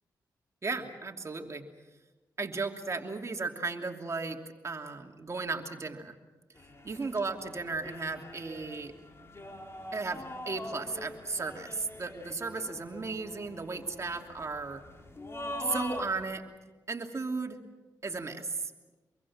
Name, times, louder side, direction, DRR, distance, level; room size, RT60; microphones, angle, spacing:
voice 1, 0.6-1.6 2.4-6.1 6.8-8.9 9.9-14.8 15.6-16.4 16.9-17.6 18.0-18.9, right 3 dB, 40° right, 3 dB, 2.9 m, -35 dB
sound 1, 6.6-16.4, left 1 dB, 35° left, 3.7 m, -44 dB
25.0 x 23.5 x 7.3 m, 1.2 s
cardioid pair, 65°, 8 cm